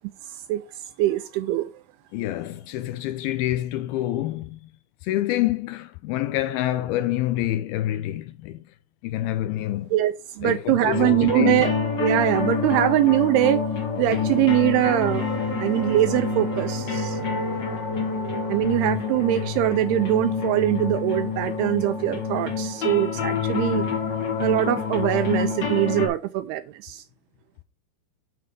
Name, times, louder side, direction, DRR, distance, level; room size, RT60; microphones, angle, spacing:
voice 1, 0.3-0.6 1.0-1.7 9.9-11.7 12.0-13.6 14.0-15.3 15.6-17.4 18.5-23.8 24.4-27.0, right 14 dB, 85° right, 2.4 m, -22 dB
voice 2, 2.1-4.7 5.0-8.6 9.0-9.9 10.4-11.7, left 14 dB, 85° left, 2.1 m, -27 dB
sound 1, 10.8-26.1, left 5 dB, 60° left, 1.1 m, -27 dB
sound 2, 15.0-24.0 24.4-24.5, right 10 dB, 65° right, 2.2 m, -39 dB
9.1 x 3.9 x 5.1 m
omnidirectional pair, 4.8 m